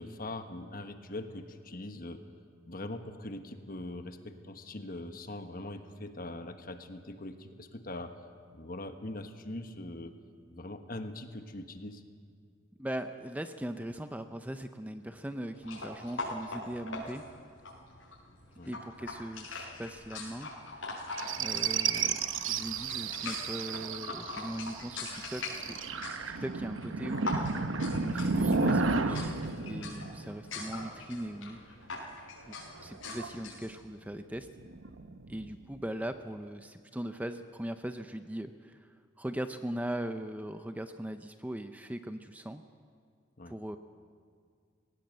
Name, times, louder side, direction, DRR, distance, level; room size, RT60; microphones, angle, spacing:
voice 1, 0.0-2.2 2.7-8.1 8.5-10.2 10.5-12.0 18.6-18.8 43.4-43.5, left 2 dB, 45° left, 7 dB, 1.3 m, -42 dB
voice 2, 12.8-17.2 18.7-20.5 21.4-26.1 26.4-29.3 29.6-31.6 31.8-32.1 32.5-34.5 35.3-42.6 43.5-43.8, right 1 dB, 10° right, 8 dB, 0.5 m, -40 dB
sound 1, 15.6-33.7, left 2 dB, 80° left, 6.3 m, -42 dB
sound 2, 21.1-30.9 32.6-33.5 34.5-35.7, right 4 dB, 85° right, 1.0 m, -33 dB
20.5 x 18.0 x 7.8 m, 2.2 s
head